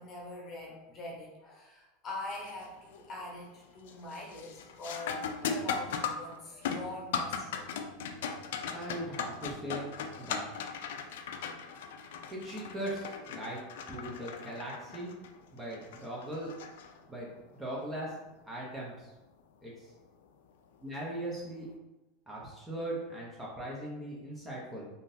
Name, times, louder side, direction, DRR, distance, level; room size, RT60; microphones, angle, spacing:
voice 1, 0.0-7.8, left 2 dB, 30° left, -3 dB, 1.0 m, -44 dB
sound 1, 2.3-2.7 3.1-3.5 3.9-17.4 19.9-20.0 20.8-21.1, left 6 dB, 80° left, 0.3 m, -38 dB
voice 2, 8.7-10.4 12.3-13.6 13.9-15.1 15.5-16.5 17.1-18.1 18.4-19.1 19.6-19.9 20.8-21.7 22.3-24.9, right 1 dB, 10° right, -4 dB, 0.7 m, -39 dB
3.6 x 2.6 x 2.6 m, 1.0 s
supercardioid pair, 140°, 0 cm